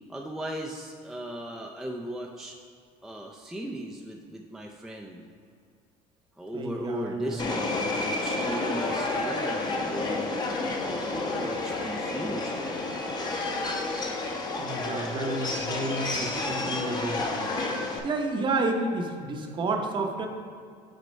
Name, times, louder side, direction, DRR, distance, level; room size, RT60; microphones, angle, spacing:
voice 1, 0.1-2.6 3.0-5.2 6.4-10.4 10.8-13.0, right 1 dB, ahead, 0 dB, 0.4 m, -37 dB
voice 2, 6.5-7.6 14.6-17.5 18.0-20.3, right 2 dB, 35° right, 4 dB, 0.8 m, -30 dB
Subway metro underground, 7.4-18.0, left 2 dB, 30° left, 0.8 m, -30 dB
6.4 x 4.3 x 5.2 m, 2.2 s
cardioid pair, 125°, 15 cm